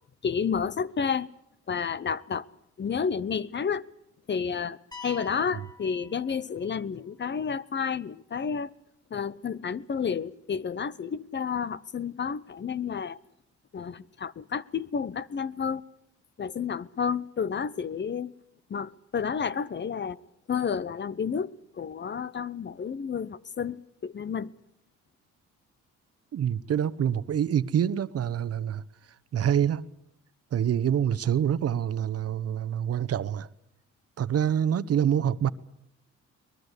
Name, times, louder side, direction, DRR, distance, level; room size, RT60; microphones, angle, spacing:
voice 1, 0.2-1.3 1.7-2.5 2.8-3.9 4.3-8.7 9.1-13.2 13.7-15.8 16.4-18.3 18.7-20.2 20.5-24.5, left 6 dB, 35° left, 0.8 m, -31 dB
sound 1, 4.9-6.8, left 3 dB, 15° left, 3.1 m, -46 dB
voice 2, 26.3-28.8 29.3-29.9 30.5-33.5 34.2-35.5, right 9 dB, 55° right, 1.0 m, -26 dB
23.0 x 20.5 x 8.2 m
cardioid pair, 90°, 30 cm